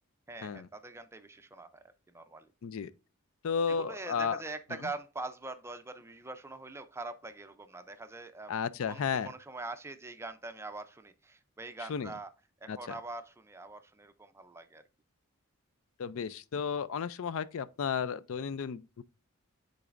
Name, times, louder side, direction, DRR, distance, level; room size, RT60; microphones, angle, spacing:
voice 1, 0.3-2.5 3.7-12.3 12.6-14.8, right 3 dB, 10° right, 0.5 m, -43 dB
voice 2, 3.4-4.4 8.5-9.3 11.9-12.1 12.7-12.8 16.0-19.0, left 6 dB, 65° left, 0.4 m, -33 dB
10.0 x 4.0 x 2.5 m
head